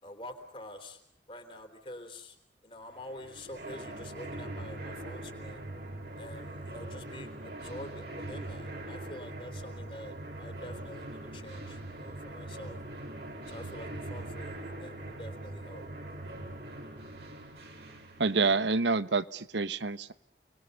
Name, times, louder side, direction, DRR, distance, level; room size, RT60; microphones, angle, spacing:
voice 1, 0.0-1.0 1.3-2.4 2.6-5.7 6.2-12.8 13.5-15.8, left 1 dB, 30° left, 5 dB, 3.7 m, -47 dB
sound 1, 3.0-18.7, right 1 dB, 60° right, 3.6 m, -42 dB
voice 2, 18.2-20.1, right 4 dB, 90° right, 14 dB, 1.1 m, -27 dB
30.0 x 21.0 x 6.9 m, 0.67 s
head